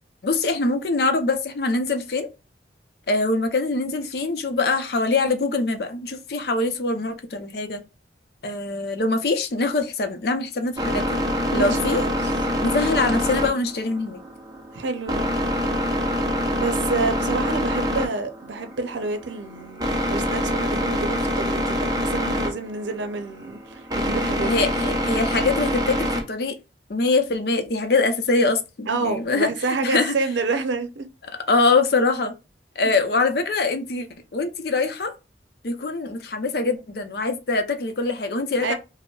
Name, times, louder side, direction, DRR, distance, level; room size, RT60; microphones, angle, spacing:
voice 1, 0.2-2.3 3.1-7.8 8.4-11.2 11.5-12.0 12.6-14.2 24.4-26.6 26.9-29.5 29.8-30.1 31.5-32.3 32.8-34.1 34.3-35.1 35.6-38.7, left 3 dB, 60° left, 0.5 m, -23 dB
sound 1, 10.8-26.2, equal, 20° right, 0.6 m, -25 dB
voice 2, 11.5-12.2 14.7-15.3 16.6-24.8 28.9-31.1 38.6-38.7, right 3 dB, 90° right, 0.6 m, -28 dB
5.1 x 2.0 x 2.3 m
head